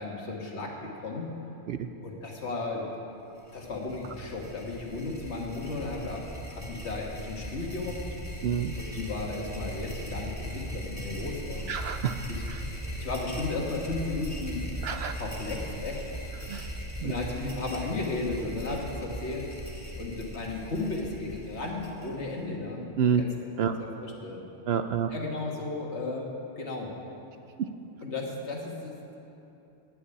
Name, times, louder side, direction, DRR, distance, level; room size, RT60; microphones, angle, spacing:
voice 1, 0.0-1.3 2.0-2.9 3.5-6.2 6.5-8.0 8.8-11.7 12.3-12.4 13.0-16.1 17.0-19.6 20.0-22.8 23.2-23.3 23.7-24.4 25.1-26.9 28.0-29.2, left 3 dB, 60° left, 0 dB, 1.9 m, -34 dB
sound 1, 3.4-22.4, equal, 15° left, 1.4 m, -39 dB
voice 2, 8.4-8.8 11.7-12.2 12.5-12.6 14.8-15.1 16.5-16.7 17.0-17.1 23.0-23.2 23.6-23.7 24.7-25.1, right 8 dB, 65° right, 8 dB, 0.7 m, -28 dB
9.3 x 8.5 x 9.7 m, 2.9 s
omnidirectional pair, 1.3 m